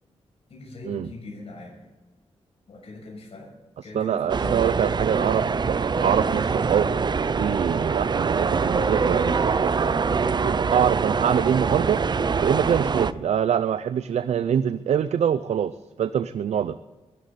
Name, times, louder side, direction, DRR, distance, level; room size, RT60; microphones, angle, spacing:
voice 1, 0.5-1.8 2.7-3.5 3.8-4.7, left 2 dB, 65° left, -3 dB, 7.0 m, -41 dB
voice 2, 3.9-6.9 7.4-9.7 10.4-12.0 12.4-16.8, right 8 dB, 80° right, 13 dB, 0.6 m, -24 dB
sound 1, 4.3-13.1, right 5 dB, 40° right, 0.6 m, -24 dB
22.5 x 13.0 x 4.2 m, 1.2 s
cardioid pair, 90°, 11 cm